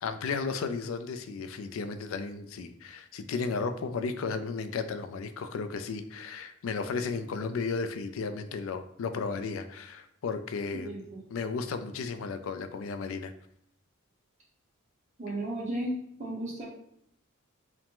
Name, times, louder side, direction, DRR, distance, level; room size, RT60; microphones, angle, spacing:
voice 1, 0.0-10.9 11.3-13.3, left 4 dB, 70° left, 10 dB, 0.3 m, -34 dB
voice 2, 10.7-11.2 15.2-15.9 16.2-16.6, right 1 dB, 35° right, -4 dB, 1.2 m, -34 dB
4.7 x 2.0 x 3.7 m, 0.70 s
head